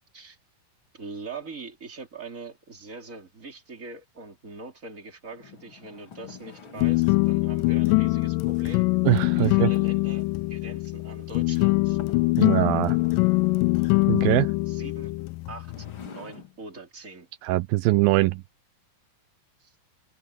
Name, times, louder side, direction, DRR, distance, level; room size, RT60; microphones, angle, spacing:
voice 1, 0.9-8.9 9.3-12.0 14.7-15.1 15.5-17.3 19.6-19.7, right 3 dB, 20° right, 3.6 m, -42 dB
sound 1, 5.3-7.5 9.3-10.1 10.8-10.9 11.3-11.4 12.0-12.3 12.8-14.3 15.3-16.6, left 6 dB, 40° left, 2.8 m, -45 dB
sound 2, 6.8-16.1, left 24 dB, 80° left, 2.0 m, -23 dB
voice 2, 9.1-9.7 12.4-13.0 14.1-14.5 17.4-18.4, right 19 dB, 85° right, 2.4 m, -22 dB
open air
omnidirectional pair, 4.2 m